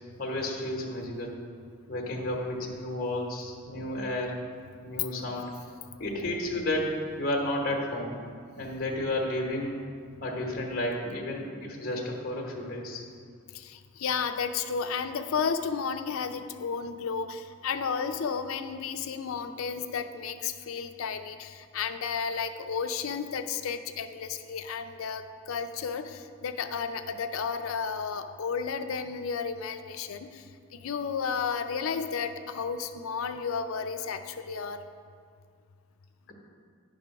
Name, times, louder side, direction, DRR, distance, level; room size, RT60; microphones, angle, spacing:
voice 1, 0.2-1.3 1.9-4.4 4.8-5.5 6.0-8.2 8.6-9.8 10.2-13.0, left 1 dB, 40° left, -1 dB, 1.0 m, -32 dB
voice 2, 13.5-30.4 30.7-34.8, left 6 dB, 75° left, 9 dB, 0.4 m, -32 dB
9.8 x 3.6 x 5.8 m, 2.2 s
head